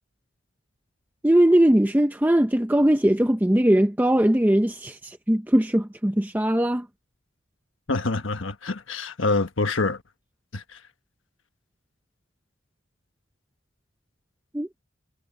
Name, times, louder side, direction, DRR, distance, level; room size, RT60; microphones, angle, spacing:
voice 1, 1.2-6.9 14.5-14.7, right 1 dB, 10° right, 0.6 m, -20 dB
voice 2, 7.9-10.0 10.5-10.8, left 3 dB, 75° left, 1.3 m, -26 dB
head